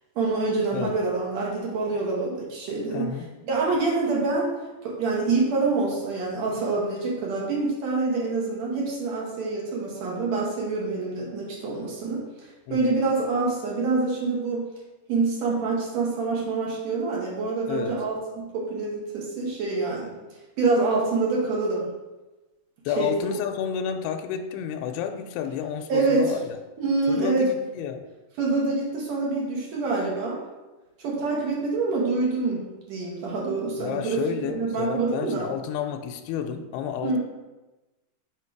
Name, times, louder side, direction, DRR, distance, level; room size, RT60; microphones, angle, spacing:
voice 1, 0.2-3.1 3.4-4.5 4.8-12.2 12.7-14.7 15.1-20.1 20.6-21.8 23.0-23.1 25.9-26.3 26.8-27.5 28.4-30.4 31.0-32.6 32.9-35.5 37.0-37.2, right 3 dB, 65° right, -3 dB, 1.9 m, -26 dB
voice 2, 2.9-3.3 12.7-13.0 17.7-18.0 22.9-26.6 27.1-28.1 33.8-37.2, left 8 dB, 85° left, 6 dB, 2.5 m, -31 dB
8.1 x 2.8 x 4.6 m, 1.1 s
omnidirectional pair, 4.4 m